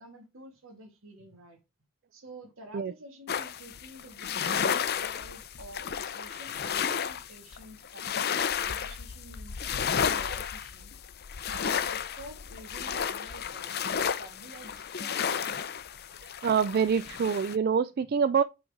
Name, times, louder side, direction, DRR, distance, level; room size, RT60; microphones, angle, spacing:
voice 1, 0.0-1.6 2.1-10.9 11.5-15.6 18.0-18.1, right 1 dB, 70° right, 2.5 m, -50 dB
sound 1, 3.3-17.6, left 7 dB, 50° left, 0.5 m, -32 dB
voice 2, 16.4-18.4, right 6 dB, 45° right, 0.3 m, -25 dB
8.7 x 3.9 x 5.2 m
head